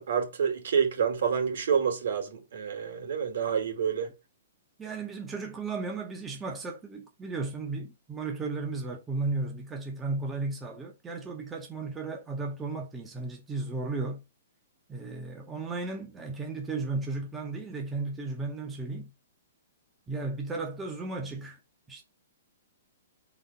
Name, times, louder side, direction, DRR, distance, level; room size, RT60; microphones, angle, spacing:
voice 1, 0.0-4.1, right 7 dB, 70° right, 2.2 m, -28 dB
voice 2, 4.8-14.2 14.9-19.1 20.1-21.6 21.9-22.0, right 3 dB, 10° right, 0.7 m, -34 dB
4.3 x 4.1 x 5.5 m
hypercardioid pair, 165°, 0 cm